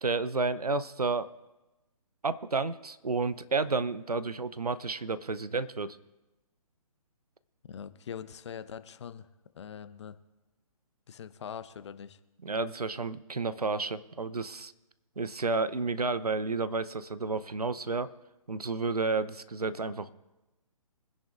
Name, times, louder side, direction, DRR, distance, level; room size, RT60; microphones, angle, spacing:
voice 1, 0.0-1.3 2.2-6.0 12.4-14.7 15.2-18.1 18.5-20.1, right 3 dB, 85° right, 14 dB, 0.8 m, -31 dB
voice 2, 7.6-9.3 9.5-10.2 11.1-12.2, left 8 dB, 50° left, 13 dB, 0.8 m, -42 dB
24.5 x 10.5 x 2.6 m, 1.0 s
figure-of-eight pair, 135°, 19 cm